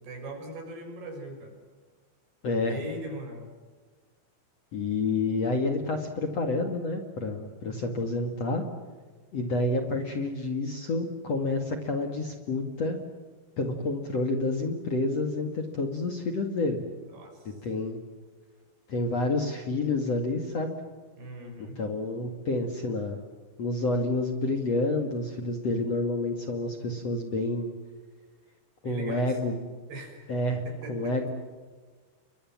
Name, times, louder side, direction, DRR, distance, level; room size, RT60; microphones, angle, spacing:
voice 1, 0.0-1.5 2.6-3.5 17.1-17.6 21.2-21.8 28.8-29.3 29.9-30.2 30.7-31.2, right 1 dB, 65° right, 4 dB, 7.8 m, -40 dB
voice 2, 2.4-2.8 4.7-8.7 9.3-13.0 13.6-16.8 17.6-18.0 18.9-20.7 21.8-23.2 23.6-27.7 28.8-29.6 30.3-30.6 30.9-31.3, left 2 dB, 45° left, 5 dB, 2.6 m, -29 dB
29.5 x 24.5 x 7.5 m, 1.4 s
omnidirectional pair, 5.1 m